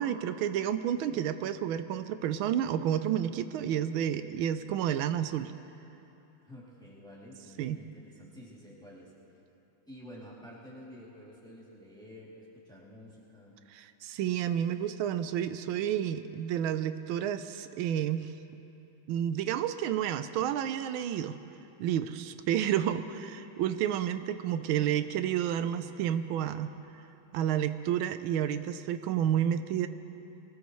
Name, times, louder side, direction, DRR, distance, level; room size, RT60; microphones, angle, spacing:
voice 1, 0.0-5.5 7.6-7.8 13.7-18.3 19.1-21.4 21.8-26.7 27.3-29.9, right 10 dB, 80° right, 11 dB, 1.4 m, -30 dB
voice 2, 6.5-9.1 9.9-13.5, equal, ahead, -6 dB, 2.6 m, -50 dB
23.0 x 19.0 x 3.1 m, 2.9 s
omnidirectional pair, 2.3 m